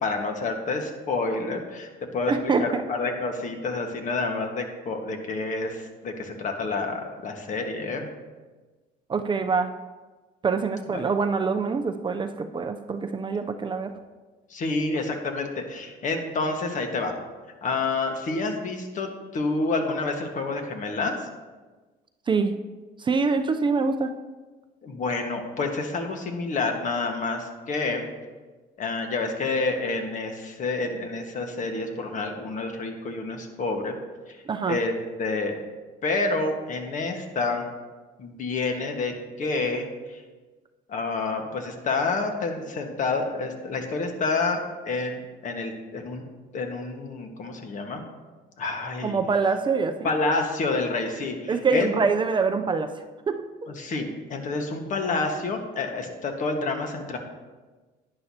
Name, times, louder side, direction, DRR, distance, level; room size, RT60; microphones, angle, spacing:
voice 1, 0.0-8.1 10.9-11.0 14.5-17.1 17.6-21.3 24.8-28.0 28.8-34.0 34.3-34.4 34.7-35.6 36.0-37.7 38.2-40.2 40.9-46.2 46.5-48.0 48.6-49.2 50.0-51.9 53.7-57.2, left 3 dB, 50° left, 4 dB, 1.5 m, -28 dB
voice 2, 2.3-2.8 9.1-9.7 10.4-13.9 22.3-22.5 23.0-24.1 34.5-34.8 49.0-50.1 51.5-52.9 53.3-53.4, right 4 dB, 30° right, 7 dB, 0.5 m, -25 dB
11.0 x 10.0 x 2.8 m, 1.3 s
cardioid pair, 110°, 17 cm